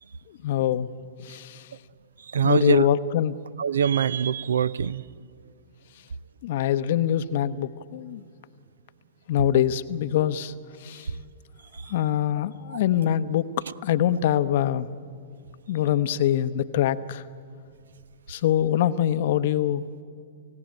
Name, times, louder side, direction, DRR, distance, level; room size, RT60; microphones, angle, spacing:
voice 1, 0.4-0.9 1.2-1.7 2.4-3.4 6.4-8.2 9.3-10.5 10.8-11.1 11.9-14.9 15.7-17.2 18.3-19.8, left 11 dB, 50° left, 0.8 m, -24 dB
voice 2, 2.2-2.9 3.6-5.0 11.0-11.1 11.7-11.9, right 7 dB, 65° right, 0.5 m, -24 dB
29.5 x 16.5 x 8.8 m
figure-of-eight pair, 105°, 0 cm